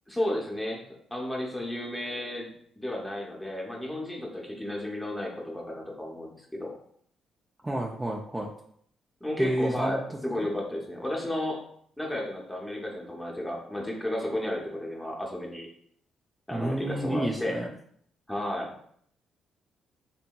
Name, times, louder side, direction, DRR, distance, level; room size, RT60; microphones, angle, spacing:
voice 1, 0.1-6.7 9.2-11.6 12.0-15.7 16.5-17.6 18.3-18.7, left 1 dB, 5° left, -2 dB, 0.7 m, -33 dB
voice 2, 7.6-8.5 9.4-10.0 16.5-17.7, right 1 dB, 15° right, -1 dB, 0.4 m, -30 dB
2.7 x 2.7 x 2.3 m, 0.65 s
cardioid pair, 95°, 0 cm